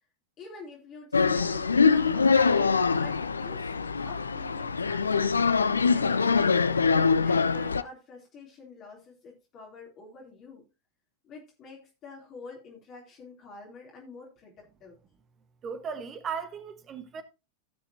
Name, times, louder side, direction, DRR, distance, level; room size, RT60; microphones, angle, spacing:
voice 1, 0.4-10.7 11.2-15.0, left 3 dB, 30° left, 3.5 m, -47 dB
sound 1, 1.1-7.8, left 5 dB, 75° left, 0.4 m, -24 dB
voice 2, 15.6-17.2, right 6 dB, 25° right, 1.5 m, -36 dB
16.5 x 6.4 x 2.9 m
figure-of-eight pair, 90°, 0 cm